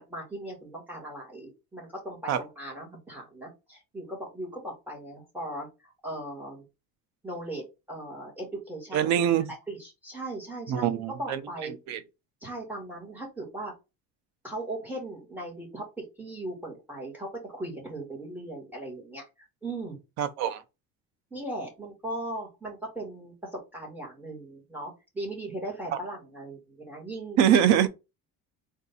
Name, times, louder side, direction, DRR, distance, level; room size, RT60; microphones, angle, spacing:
voice 1, 0.0-6.6 7.2-11.7 12.4-13.7 14.4-19.2 19.6-20.0 21.3-27.4, right 1 dB, 5° right, 2.0 m, -38 dB
voice 2, 8.9-9.5 10.7-12.0 20.2-20.6 27.4-27.9, right 9 dB, 65° right, 0.8 m, -24 dB
3.8 x 2.7 x 4.1 m
cardioid pair, 170°, 30 cm